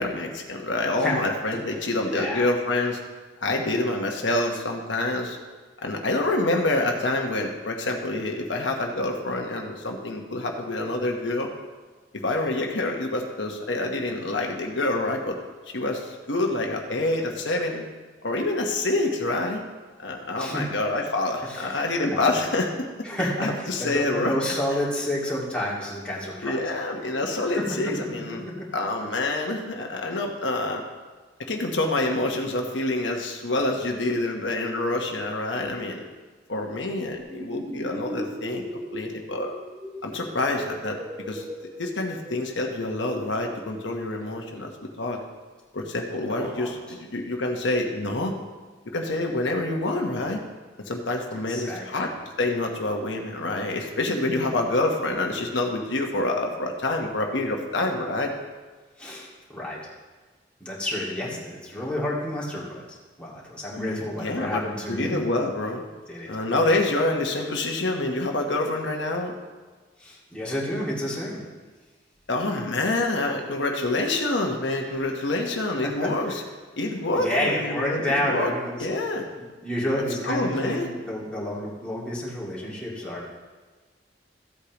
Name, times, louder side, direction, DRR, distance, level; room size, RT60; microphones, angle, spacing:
voice 1, 0.0-3.0 3.4-5.4 5.8-11.5 12.1-15.4 15.7-17.8 18.2-19.6 20.0-22.7 23.2-24.3 26.4-28.4 28.7-30.8 31.5-36.0 36.5-39.5 40.0-41.0 41.3-41.4 41.8-44.7 45.0-45.2 45.7-48.3 48.9-50.4 50.8-52.1 52.4-58.3 63.8-65.8 66.3-69.3 72.3-76.4 76.8-78.5 78.8-79.3 80.0-80.9, left 2 dB, 80° left, 1 dB, 1.1 m, -27 dB
voice 2, 2.1-2.5 20.4-20.7 21.5-21.8 22.1-22.2 23.0-26.7 27.3-27.9 28.5-28.7 46.3-46.7 51.5-52.1 59.0-59.8 60.6-62.8 63.2-65.2 66.1-66.3 70.0-71.4 74.9-75.3 76.0-76.4 77.1-78.9 79.6-83.4, left 1 dB, 5° left, -6 dB, 2.2 m, -30 dB
sound 1, 37.2-42.6, equal, 15° right, 1.1 m, -38 dB
14.5 x 8.3 x 3.0 m, 1.3 s
head